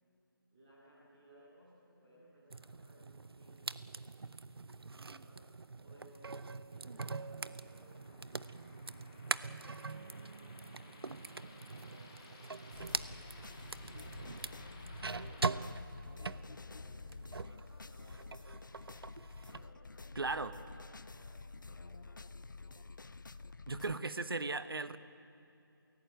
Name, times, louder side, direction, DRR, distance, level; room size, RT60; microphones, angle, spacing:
voice 1, 0.5-3.8 5.1-5.5 5.8-13.3 13.9-14.5 14.9-18.5 19.5-22.2 22.4-23.0, right 1 dB, 15° right, -9 dB, 2.6 m, -63 dB
sound 1, 2.5-17.6 18.0-19.7, right 4 dB, 90° right, 0.7 m, -43 dB
sound 2, 6.6-15.6, left 2 dB, 10° left, 1.2 m, -59 dB
sound 3, 12.7-24.0, left 3 dB, 55° left, 0.7 m, -50 dB
voice 2, 20.2-20.5 23.7-25.0, right 3 dB, 75° right, 12 dB, 1.2 m, -36 dB
23.5 x 16.5 x 9.3 m, 2.7 s
figure-of-eight pair, 180°, 12 cm